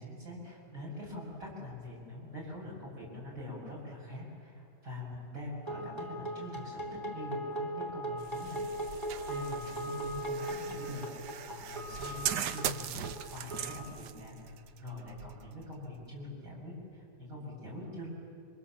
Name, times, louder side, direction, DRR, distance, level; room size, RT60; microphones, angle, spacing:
voice 1, 0.0-8.6 8.9-18.1, left 1 dB, 50° right, -3 dB, 7.6 m, -44 dB
sound 1, 5.7-14.2, right 1 dB, 15° right, 2.9 m, -39 dB
sound 2, 8.2-16.1, right 9 dB, 75° right, 1.4 m, -40 dB
27.5 x 24.5 x 7.4 m, 2.5 s
omnidirectional pair, 1.8 m